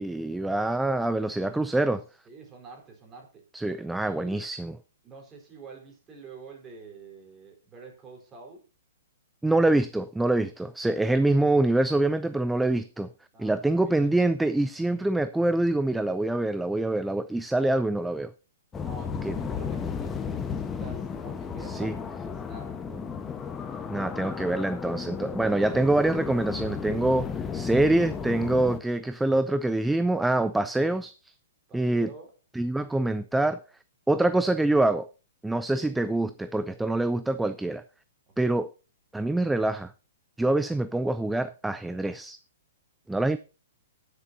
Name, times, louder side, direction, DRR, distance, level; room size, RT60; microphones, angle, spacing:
voice 1, 0.0-2.0 3.5-4.8 9.4-13.1 13.4-18.3 19.2-19.4 21.6-21.9 23.9-31.3 31.7-32.1 32.5-33.6 34.1-35.1 35.4-37.8 38.4-38.7 39.1-39.9 40.4-42.4 43.1-43.4, right 2 dB, 5° right, 0.4 m, -25 dB
voice 2, 1.4-1.7 2.3-3.4 4.0-4.4 5.0-8.6 13.3-14.2 14.7-15.0 18.8-23.1 31.7-32.3 35.7-36.2 38.3-38.6, right 4 dB, 20° right, 3.9 m, -48 dB
sound 1, 18.7-28.8, left 6 dB, 15° left, 1.0 m, -34 dB
20.0 x 6.8 x 2.7 m
hypercardioid pair, 125°, 0 cm